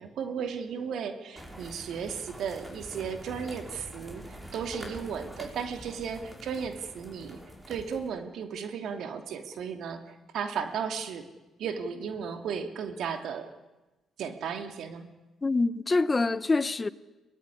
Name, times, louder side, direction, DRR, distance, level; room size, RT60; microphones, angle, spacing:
voice 1, 0.0-7.4 7.7-11.2 11.6-13.5 14.2-15.1, right 6 dB, 75° right, 2.6 m, -35 dB
sound 1, 1.4-8.1, equal, 15° right, 5.7 m, -45 dB
voice 2, 15.4-16.9, left 3 dB, 25° left, 1.0 m, -25 dB
22.5 x 19.5 x 10.0 m
cardioid pair, 90°, 0 cm